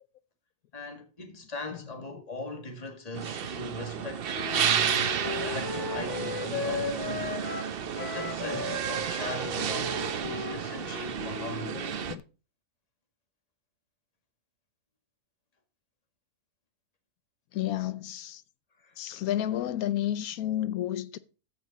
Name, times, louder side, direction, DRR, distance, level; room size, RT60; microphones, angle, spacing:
voice 1, 0.7-4.9 5.4-7.5 8.0-11.8 18.8-19.0, left 1 dB, 25° left, 1.8 m, -40 dB
sound 1, 3.1-12.1, right 8 dB, 55° right, 0.6 m, -31 dB
Wind instrument woodwind instrument, 4.3-11.7, left 6 dB, 55° left, 1.3 m, -37 dB
voice 2, 11.7-12.2 17.5-18.4 19.0-21.2, left 12 dB, 75° left, 1.0 m, -32 dB
14.0 x 5.2 x 4.0 m
omnidirectional pair, 1.7 m